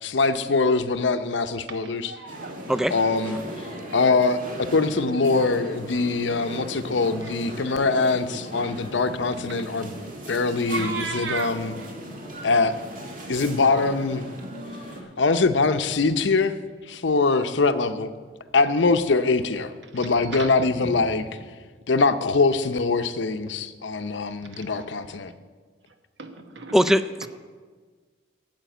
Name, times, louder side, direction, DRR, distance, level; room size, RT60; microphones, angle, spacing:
voice 1, 0.0-2.1 2.9-3.4 3.9-4.4 4.7-9.9 10.3-11.7 12.4-12.8 13.3-14.3 15.2-16.6 16.9-18.1 18.5-21.2 21.9-25.3, left 3 dB, 70° left, 11 dB, 0.7 m, -23 dB
voice 2, 1.7-2.7 7.2-7.4 10.7-11.5 19.9-20.5 20.8-21.0 24.5-24.7 26.2-27.0 27.2-27.3, right 4 dB, 70° right, 7 dB, 1.2 m, -35 dB
sound 1, 2.3-15.0, right 1 dB, 45° right, 1.8 m, -38 dB
voice 3, 26.7-27.3, equal, ahead, 14 dB, 0.3 m, -20 dB
9.2 x 7.7 x 9.0 m, 1.5 s
head